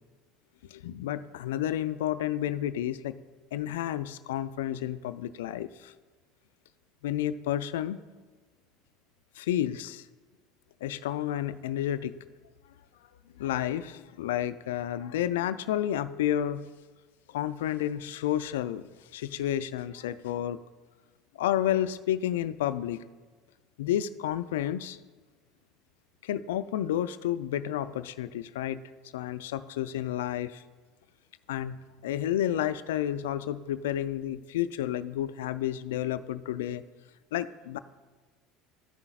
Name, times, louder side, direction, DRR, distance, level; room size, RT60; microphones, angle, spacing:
voice 1, 0.7-3.2 3.5-5.9 7.0-8.0 9.4-10.1 10.8-12.2 13.4-16.7 17.3-20.6 21.4-23.0 23.8-25.0 26.2-28.8 29.1-30.6 31.5-36.8 37.3-37.8, left 11 dB, 80° left, 14 dB, 0.3 m, -31 dB
14.0 x 5.7 x 2.4 m, 1.3 s
hypercardioid pair, 80°, 0 cm